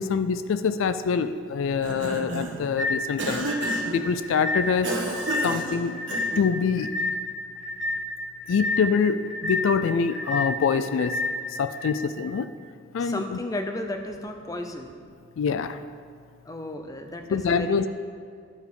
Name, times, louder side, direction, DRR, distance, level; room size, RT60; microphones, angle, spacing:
voice 1, 0.0-3.5 3.9-4.9 5.4-5.9 6.4-6.9 8.5-11.1 11.6-12.5 12.9-13.4 15.4-15.8 17.3-17.8, left 6 dB, 75° left, 11 dB, 0.3 m, -25 dB
Cough, 1.6-2.7 3.2-4.0 4.8-6.5, right 2 dB, 65° right, 1.1 m, -31 dB
sound 1, 2.8-11.9, left 2 dB, 5° right, 1.0 m, -30 dB
voice 2, 13.0-14.9 16.4-17.9, left 1 dB, 15° left, 5 dB, 0.5 m, -33 dB
11.5 x 5.0 x 4.8 m, 2.2 s
head